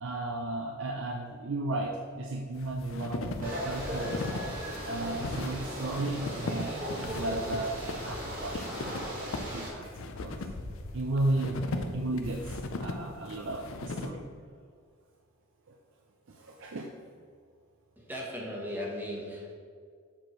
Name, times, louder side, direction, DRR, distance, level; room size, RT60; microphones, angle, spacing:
voice 1, 0.0-4.3 4.8-8.7 9.0-10.5 10.9-11.7 11.9-14.2 15.7-15.8 16.3-16.9, right 2 dB, 60° right, 2 dB, 0.5 m, -34 dB
sound 1, 2.5-14.1, left 2 dB, 65° left, 0.5 m, -38 dB
sound 2, 3.4-9.7, equal, 40° right, 1.8 m, -37 dB
voice 2, 18.0-19.5, left 1 dB, 10° right, -2 dB, 1.0 m, -37 dB
7.4 x 6.2 x 3.1 m, 2.1 s
head